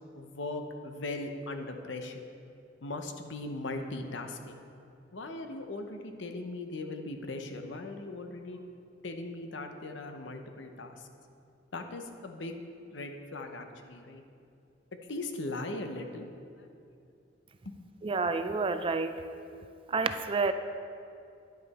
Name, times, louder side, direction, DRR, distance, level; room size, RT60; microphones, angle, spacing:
voice 1, 0.1-2.3 2.8-4.6 5.1-8.6 9.0-11.1 11.7-12.6 12.9-14.2 15.1-16.3 17.6-17.8, left 2 dB, 70° left, 5 dB, 0.8 m, -39 dB
voice 2, 18.0-19.1 19.9-20.5, right 4 dB, 30° right, 9 dB, 0.3 m, -29 dB
10.5 x 8.2 x 4.2 m, 2.5 s
head